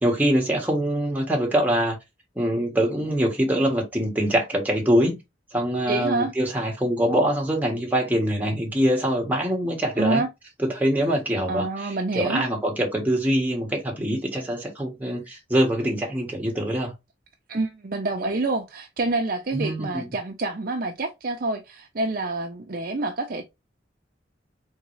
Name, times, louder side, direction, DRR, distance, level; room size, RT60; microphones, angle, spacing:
voice 1, 0.0-2.0 2.3-5.2 5.5-10.2 10.6-16.9 19.5-20.0, equal, 10° right, 1.3 m, -24 dB
voice 2, 5.9-6.3 10.0-10.3 11.5-12.5 17.5-23.5, right 2 dB, 45° right, 0.6 m, -27 dB
3.8 x 3.7 x 3.1 m
head